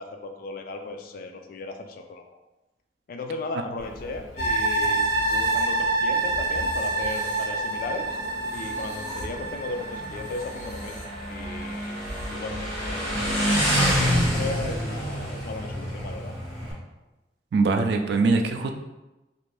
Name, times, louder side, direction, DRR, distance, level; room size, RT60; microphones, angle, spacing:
voice 1, 0.0-2.3 3.1-5.0 5.3-8.2 8.5-12.0 12.3-16.3, left 3 dB, 50° left, 5 dB, 0.3 m, -36 dB
Motorcycle, 3.8-16.7, equal, 35° right, 1.5 m, -29 dB
sound 1, 4.4-11.7 12.1-12.2, right 2 dB, 35° left, 0.9 m, -27 dB
voice 2, 17.5-18.8, right 3 dB, 65° right, 6 dB, 0.3 m, -22 dB
2.5 x 2.5 x 3.3 m, 1.0 s
head